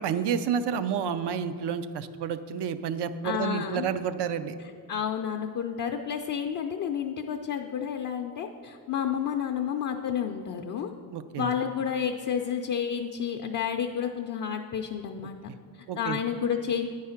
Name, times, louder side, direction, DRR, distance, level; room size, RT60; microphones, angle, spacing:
voice 1, 0.0-4.6 11.1-11.5 15.9-16.2, right 7 dB, 60° right, 12 dB, 0.6 m, -30 dB
voice 2, 3.2-3.9 4.9-10.9 11.4-16.9, left 8 dB, 45° left, 3 dB, 0.5 m, -30 dB
9.3 x 4.8 x 5.7 m, 2.2 s
cardioid pair, 95°, 46 cm